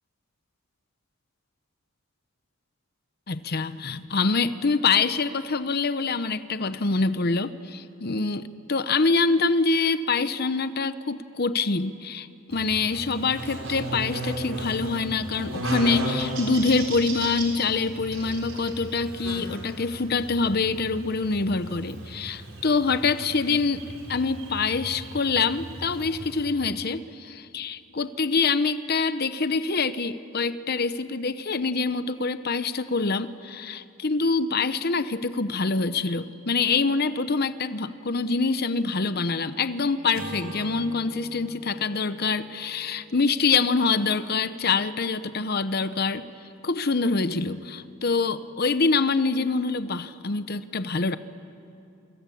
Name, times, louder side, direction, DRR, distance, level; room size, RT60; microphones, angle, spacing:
voice 1, 3.3-46.3 46.6-51.2, left 4 dB, 50° left, 12 dB, 0.9 m, -25 dB
Buzz, 12.5-26.5, right 1 dB, 70° right, 5.3 m, -35 dB
Acoustic guitar / Strum, 40.1-44.6, right 1 dB, 90° right, 3.4 m, -42 dB
29.0 x 23.5 x 8.6 m, 2.7 s
head